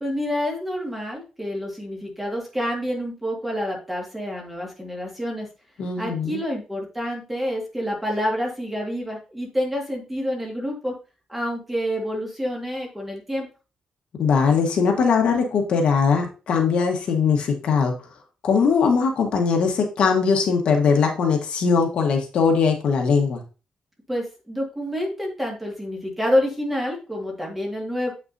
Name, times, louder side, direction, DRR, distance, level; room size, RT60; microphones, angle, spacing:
voice 1, 0.0-5.5 6.0-10.9 11.3-13.5 24.1-28.1, equal, 5° right, -1 dB, 1.8 m, -28 dB
voice 2, 5.8-6.4 14.2-17.9 18.4-23.4, left 5 dB, 60° left, 3 dB, 1.2 m, -20 dB
7.6 x 5.8 x 2.6 m, 0.33 s
cardioid pair, 170°, 2 cm